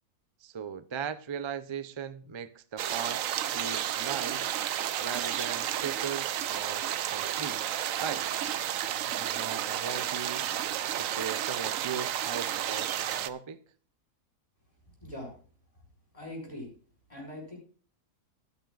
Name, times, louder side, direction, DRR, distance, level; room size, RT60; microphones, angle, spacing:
voice 1, 0.4-4.5 5.0-7.7 8.0-8.3 9.1-10.5 10.9-13.6, right 7 dB, 35° right, 0.4 m, -38 dB
sound 1, 2.8-13.3, right 11 dB, 75° right, 1.1 m, -32 dB
voice 2, 15.0-15.3 16.1-16.7 17.1-17.6, left 1 dB, 25° left, 6.0 m, -41 dB
18.0 x 9.7 x 2.5 m
omnidirectional pair, 1.4 m